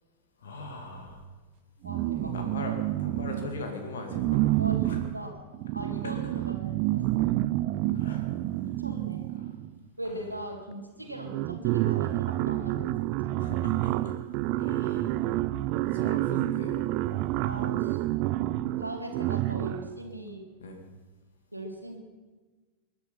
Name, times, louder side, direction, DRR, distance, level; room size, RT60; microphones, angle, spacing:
voice 1, 0.4-1.2 2.2-5.0 6.0-6.1 7.9-8.3 9.4-9.5 10.1-10.2 13.4-14.2 14.6-15.1 15.9-16.9 20.6-20.8, left 3 dB, 65° left, 4 dB, 2.4 m, -40 dB
sound 1, 1.8-3.6 4.1-9.8 10.7-10.8 11.1-20.0, right 16 dB, 45° right, 0.5 m, -29 dB
voice 2, 1.8-2.3 4.6-5.4 5.7-7.4 8.6-9.3 10.0-13.1 14.8-15.3 17.4-18.2 18.8-20.5 21.5-22.0, right 1 dB, 85° right, 3 dB, 2.2 m, -40 dB
21.5 x 9.8 x 5.8 m, 1.3 s
figure-of-eight pair, 90°, 0 cm